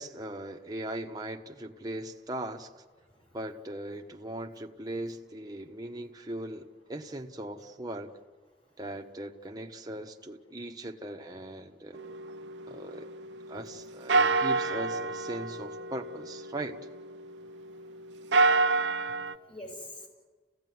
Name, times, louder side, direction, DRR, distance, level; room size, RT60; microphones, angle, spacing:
voice 1, 0.0-2.7 3.3-8.2 8.8-12.0 12.7-13.1 13.5-16.8, right 1 dB, 20° right, 2 dB, 1.2 m, -39 dB
sound 1, 11.9-13.7 14.1-17.6 18.1-19.3, right 3 dB, 85° right, 0.7 m, -28 dB
voice 2, 17.4-20.1, left 1 dB, 30° left, 2 dB, 6.0 m, -50 dB
29.5 x 16.5 x 9.5 m, 1.5 s
head